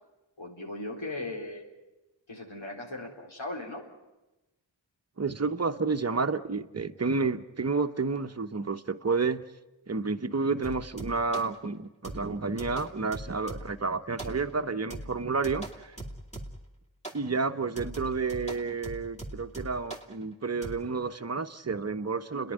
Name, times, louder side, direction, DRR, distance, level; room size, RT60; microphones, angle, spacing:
voice 1, 0.4-1.7 2.3-3.8, left 2 dB, 80° left, -1 dB, 3.9 m, -38 dB
voice 2, 5.2-9.4 9.9-15.9 17.1-22.5, right 4 dB, 35° right, 7 dB, 0.9 m, -30 dB
sound 1, 10.6-11.6 12.0-13.8 14.2-14.6 14.9-16.7 17.0-17.3 17.8-20.1 20.6-20.8, right 1 dB, 15° left, 2.6 m, -41 dB
30.0 x 11.0 x 9.8 m, 1.0 s
wide cardioid pair, 50°, 46 cm